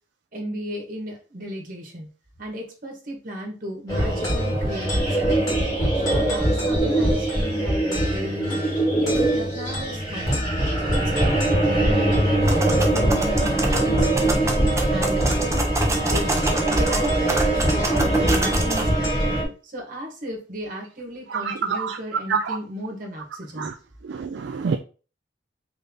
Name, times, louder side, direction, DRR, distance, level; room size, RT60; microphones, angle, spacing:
voice 1, 0.3-2.1 2.4-5.3 6.0-8.6 9.0-10.4 10.8-13.1 13.5-14.3 14.9-15.6 16.1-19.2 19.6-23.7, equal, 50° right, 1.5 m, -35 dB
sound 1, 3.9-19.4, right 1 dB, 20° left, 2.2 m, -22 dB
sound 2, 12.4-18.8, right 2 dB, 15° right, 0.7 m, -28 dB
voice 2, 21.3-22.0 22.3-22.6 23.6-23.7 24.1-24.8, right 5 dB, 65° right, 0.4 m, -26 dB
3.9 x 3.5 x 3.7 m
head